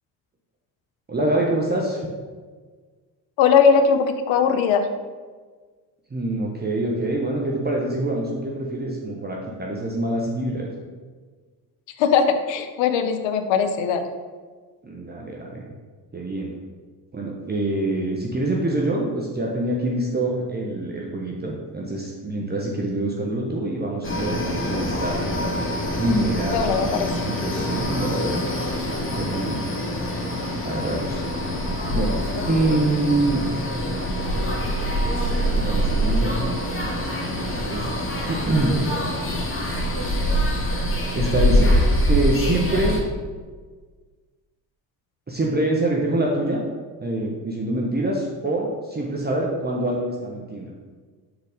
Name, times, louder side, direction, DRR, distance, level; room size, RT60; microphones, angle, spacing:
voice 1, 1.1-2.0 6.1-10.8 14.8-15.6 16.1-16.5 17.1-25.2 26.0-26.6 27.1-28.7 29.0-29.6 30.6-31.2 31.9-32.2 32.4-33.4 35.6-36.3 37.5-37.9 38.3-38.8 41.1-41.7 42.1-43.0 45.3-46.6 47.0-50.7, right 2 dB, 20° right, -2 dB, 1.1 m, -25 dB
voice 2, 3.4-4.9 12.0-14.1 26.5-27.1, left 6 dB, 60° left, 8 dB, 0.8 m, -19 dB
sound 1, 24.0-43.0, equal, 25° left, 1.7 m, -24 dB
6.1 x 4.1 x 5.0 m, 1.5 s
hypercardioid pair, 60°, 50 cm